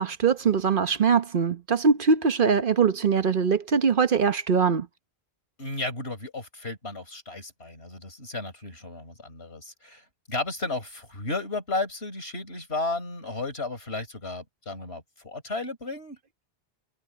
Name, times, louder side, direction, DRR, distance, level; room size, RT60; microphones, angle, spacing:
voice 1, 0.0-4.9, right 5 dB, 55° right, 1.1 m, -22 dB
voice 2, 5.6-16.2, left 2 dB, 90° left, 5.6 m, -34 dB
omnidirectional pair, 1.0 m